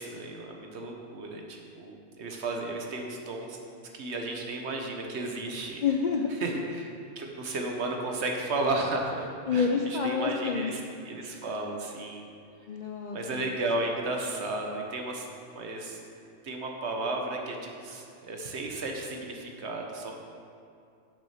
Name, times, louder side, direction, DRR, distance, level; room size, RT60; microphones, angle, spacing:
voice 1, 0.0-5.8 6.4-12.2 13.1-15.3 15.5-16.0 16.4-20.2, right 2 dB, 65° right, 1 dB, 1.2 m, -34 dB
voice 2, 5.8-6.4 9.5-10.7 12.7-13.5, left 6 dB, 60° left, 1 dB, 0.5 m, -28 dB
7.2 x 6.3 x 5.8 m, 2.4 s
omnidirectional pair, 1.2 m